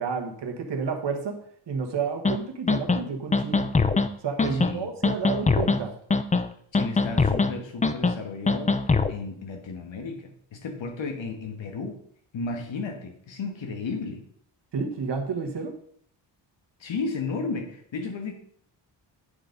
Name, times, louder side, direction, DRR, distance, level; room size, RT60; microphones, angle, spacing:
voice 1, 0.0-1.3 1.7-3.7 4.2-5.9 14.7-15.8, right 5 dB, 60° right, 4 dB, 1.5 m, -30 dB
sound 1, 2.2-2.4 2.7-3.0 3.3-4.1 4.4-4.7 5.0-5.8 6.1-6.5 6.7-7.5 7.8-8.1 8.5-9.1, left 4 dB, 15° left, 0.4 m, -22 dB
voice 2, 4.5-4.9 6.7-8.7 9.1-12.0 12.3-14.2 16.8-18.3, left 4 dB, 70° left, 4 dB, 1.6 m, -33 dB
8.9 x 4.0 x 5.2 m, 0.64 s
cardioid pair, 95°, 47 cm